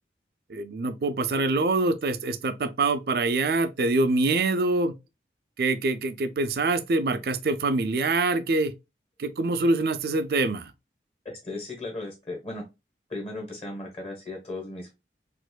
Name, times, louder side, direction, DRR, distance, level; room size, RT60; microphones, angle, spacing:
voice 1, 0.5-4.9 5.6-8.7 9.2-10.7, right 2 dB, 55° right, 0.4 m, -25 dB
voice 2, 11.2-12.6 13.1-14.9, left 2 dB, 35° left, 1.2 m, -36 dB
4.2 x 2.6 x 2.2 m
head